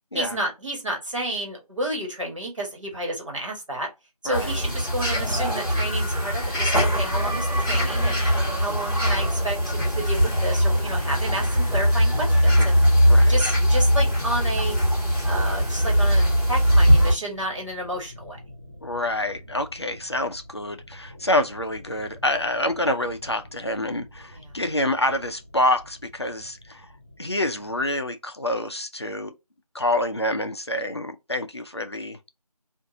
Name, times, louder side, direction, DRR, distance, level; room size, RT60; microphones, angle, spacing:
voice 1, 0.1-3.9 4.2-8.2 8.6-12.8 13.3-14.8 15.2-18.4 24.4-24.5, right 1 dB, 50° right, 1.7 m, -30 dB
sound 1, 4.3-17.1, equal, 5° left, 1.7 m, -21 dB
voice 2, 8.3-8.6 13.1-13.3 18.8-26.9 27.2-29.3 29.7-32.2, left 1 dB, 45° left, 0.5 m, -27 dB
sound 2, 9.9-27.8, equal, 25° right, 0.9 m, -45 dB
3.6 x 2.5 x 2.7 m
figure-of-eight pair, 170°, 20 cm